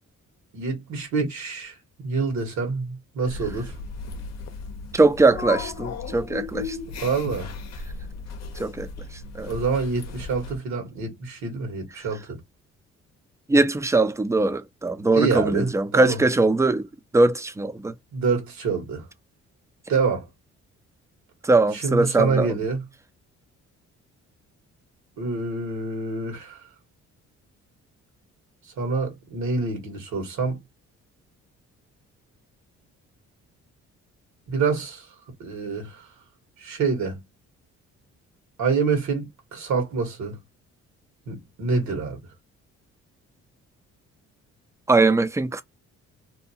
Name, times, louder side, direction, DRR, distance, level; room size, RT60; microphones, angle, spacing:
voice 1, 0.5-3.7 7.0-7.5 9.5-12.4 15.1-16.2 18.1-19.0 19.9-20.3 21.7-22.8 25.2-26.6 28.8-30.6 34.5-35.1 35.4-36.0 36.6-37.2 38.6-40.4 41.3-42.2, right 4 dB, 70° right, 1.4 m, -26 dB
sound 1, 3.3-10.6, left 4 dB, 60° left, 0.7 m, -35 dB
voice 2, 4.9-6.8 8.6-8.9 9.3-9.5 13.5-16.9 17.1-17.9 21.4-22.5 44.9-45.6, right 3 dB, 10° right, 0.4 m, -21 dB
2.7 x 2.2 x 2.7 m
cardioid pair, 90°, 30 cm